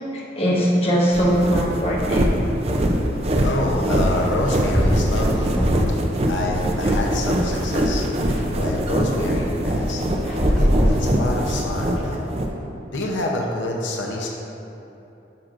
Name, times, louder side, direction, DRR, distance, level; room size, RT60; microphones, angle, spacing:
voice 1, 0.1-2.3 8.3-8.4 10.2-10.4, equal, 30° left, -5 dB, 1.1 m, -21 dB
sound 1, 1.1-12.5, equal, 30° right, 0.4 m, -23 dB
voice 2, 3.4-5.6 5.9-10.0 10.5-12.3 12.9-14.3, left 1 dB, 85° left, -1 dB, 0.7 m, -27 dB
sound 2, 4.7-6.0 6.4-7.5 10.2-11.8, equal, 5° left, 1.3 m, -21 dB
9.7 x 6.0 x 2.5 m, 3.0 s
head